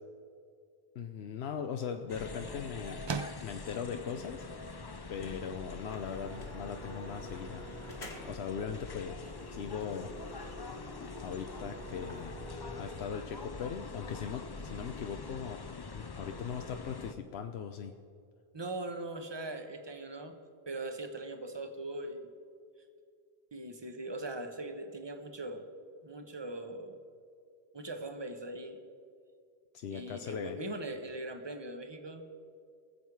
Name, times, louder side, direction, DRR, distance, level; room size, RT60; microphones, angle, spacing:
voice 1, 1.0-3.1 3.4-4.6 5.1-7.6 8.3-10.1 11.2-12.4 12.8-15.7 15.9-18.0 29.7-30.6, left 7 dB, 90° left, 6 dB, 0.9 m, -39 dB
sound 1, 1.0-10.8, right 5 dB, 45° right, 0.3 m, -48 dB
sound 2, 2.1-17.1, left 3 dB, 30° left, 0.5 m, -45 dB
sound 3, 5.4-5.5 5.9-8.5 8.9-9.0 9.3-13.0, equal, 60° left, 1.9 m, -48 dB
voice 2, 18.5-20.3 20.7-22.3 23.5-25.7 26.0-27.0 27.7-28.8 29.9-32.2, right 2 dB, 25° right, 6 dB, 1.0 m, -40 dB
20.5 x 7.4 x 4.7 m, 2.3 s
omnidirectional pair, 1.0 m